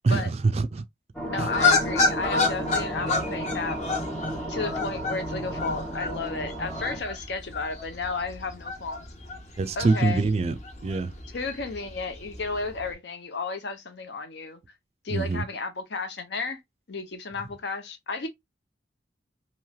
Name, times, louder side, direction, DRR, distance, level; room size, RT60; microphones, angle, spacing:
voice 1, 0.0-0.8 1.4-1.5 9.6-10.6 10.8-11.1 15.1-15.4, right 3 dB, 35° right, 0.3 m, -24 dB
sound 1, 1.1-7.0, right 1 dB, 5° left, 0.8 m, -33 dB
voice 2, 1.3-3.8 4.5-9.1 9.8-10.2 11.3-14.6 15.0-16.6 16.9-18.3, left 3 dB, 70° left, 0.7 m, -33 dB
sound 2, 1.5-12.9, left 4 dB, 40° left, 0.8 m, -30 dB
3.1 x 3.0 x 2.2 m
head